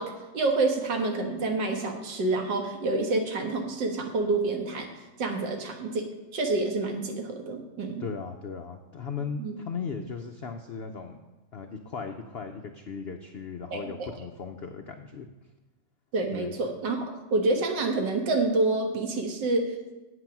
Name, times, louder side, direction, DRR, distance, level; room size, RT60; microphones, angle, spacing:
voice 1, 0.0-4.9 5.2-8.0 9.4-9.6 13.7-14.1 16.1-19.8, right 2 dB, 85° right, 3 dB, 2.0 m, -28 dB
voice 2, 8.0-11.2 11.5-15.3 16.3-16.6, left 5 dB, 85° left, 5 dB, 0.5 m, -37 dB
8.4 x 8.0 x 5.9 m, 1.1 s
omnidirectional pair, 1.9 m